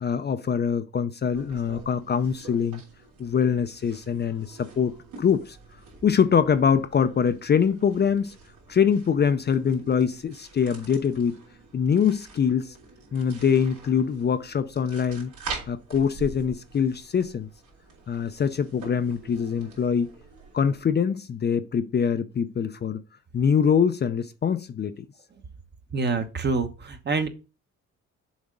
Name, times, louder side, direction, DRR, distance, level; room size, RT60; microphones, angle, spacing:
voice 1, 0.0-2.8 3.2-5.6 6.0-8.3 8.7-11.4 11.7-12.8 13.1-15.3 15.7-17.5 18.1-20.1 20.5-23.0 23.3-25.0, left 7 dB, 35° left, 0.5 m, -24 dB
sound 1, 1.3-20.8, right 4 dB, 75° right, 3.2 m, -45 dB
voice 2, 25.9-27.3, right 4 dB, 35° right, 1.0 m, -26 dB
7.2 x 4.3 x 3.8 m
cardioid pair, 90°, 30 cm